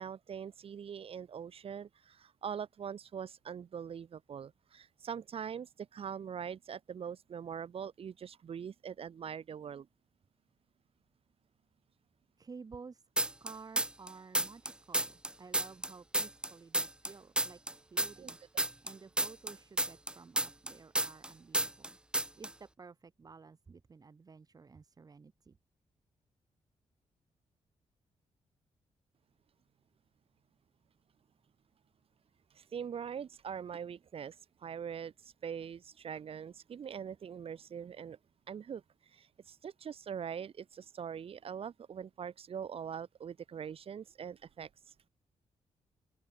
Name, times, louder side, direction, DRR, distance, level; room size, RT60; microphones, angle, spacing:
voice 1, 0.0-9.9 18.2-18.7 32.5-38.2 38.5-44.9, right 7 dB, 55° right, 2.5 m, -43 dB
voice 2, 12.4-13.1 13.4-17.6 17.9-22.0 22.3-25.6, right 5 dB, 35° right, 2.8 m, -53 dB
sound 1, 13.2-14.1 14.3-17.1 17.4-21.3 21.5-21.9 22.1-22.5, right 1 dB, 10° right, 0.8 m, -31 dB
open air
wide cardioid pair, 140°, 12 cm